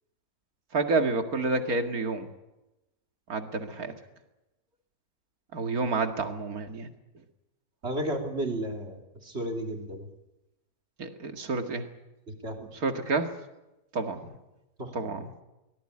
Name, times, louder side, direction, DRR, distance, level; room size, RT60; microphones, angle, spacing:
voice 1, 0.7-2.3 3.3-3.9 5.5-6.9 11.0-11.8 12.7-13.3 13.9-14.3 14.9-15.3, right 3 dB, 75° right, 6 dB, 2.5 m, -29 dB
voice 2, 7.8-10.1 12.3-12.7 14.8-14.9, right 1 dB, 45° right, 3 dB, 3.4 m, -33 dB
23.5 x 19.0 x 9.9 m, 0.99 s
omnidirectional pair, 1.6 m